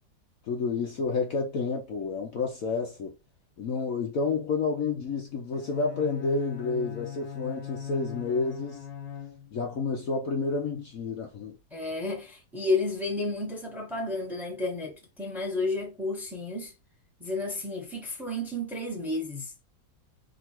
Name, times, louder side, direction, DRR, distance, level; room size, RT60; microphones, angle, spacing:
voice 1, 0.5-3.2 3.6-8.9 9.5-11.6, left 4 dB, 60° left, 1.0 m, -30 dB
Bowed string instrument, 5.5-9.7, left 8 dB, 80° left, 1.4 m, -40 dB
voice 2, 11.7-16.7 17.2-19.5, left 2 dB, ahead, 1.1 m, -31 dB
3.8 x 2.8 x 4.4 m
omnidirectional pair, 1.9 m